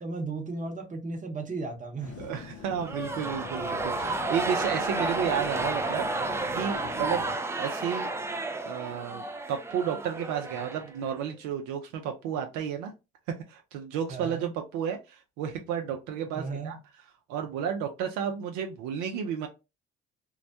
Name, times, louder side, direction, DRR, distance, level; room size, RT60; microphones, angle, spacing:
voice 1, 0.0-2.2 14.1-14.5 16.3-16.7, right 3 dB, 25° right, 0.9 m, -35 dB
sound 1, 2.0-7.4, left 6 dB, 50° left, 0.6 m, -44 dB
voice 2, 2.2-7.2 7.6-8.1 8.7-12.9 13.5-16.8 17.3-19.5, right 8 dB, 70° right, 0.5 m, -32 dB
sound 2, 2.8-11.3, right 2 dB, 10° right, 0.3 m, -32 dB
2.2 x 2.1 x 2.7 m
hypercardioid pair, 65°, 30 cm